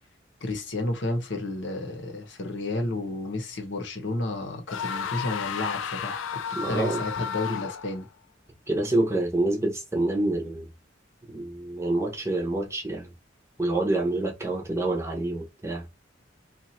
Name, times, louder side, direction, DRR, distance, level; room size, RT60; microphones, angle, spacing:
voice 1, 0.4-6.4 6.7-8.1, left 2 dB, 70° left, 0.9 m, -31 dB
sound 1, 4.7-8.0, left 7 dB, 85° left, 0.4 m, -33 dB
voice 2, 6.5-7.0 8.7-10.7 11.3-13.1 13.6-15.9, right 2 dB, 15° right, 0.8 m, -27 dB
2.7 x 2.4 x 4.2 m
head